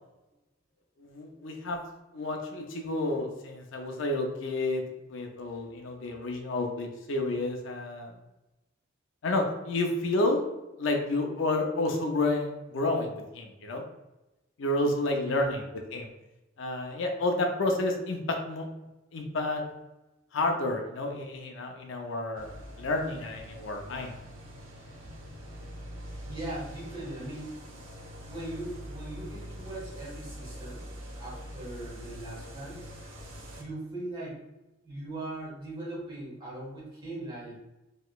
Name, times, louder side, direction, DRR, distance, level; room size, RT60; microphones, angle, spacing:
voice 1, 1.0-1.8 2.1-4.8 5.1-8.1 9.2-10.4 10.8-13.8 14.6-15.6 15.9-16.1 16.6-18.7 19.1-19.6 20.3-24.2, left 2 dB, 65° left, 2 dB, 0.5 m, -30 dB
voice 2, 15.1-15.6 23.5-23.6 25.0-25.1 26.2-27.6 28.2-30.9 31.2-32.8 33.6-34.4 34.8-37.6, right 1 dB, 20° right, -6 dB, 1.3 m, -40 dB
sound 1, 22.3-33.6, equal, 75° right, 0.8 m, -44 dB
3.7 x 3.0 x 2.3 m, 0.99 s
head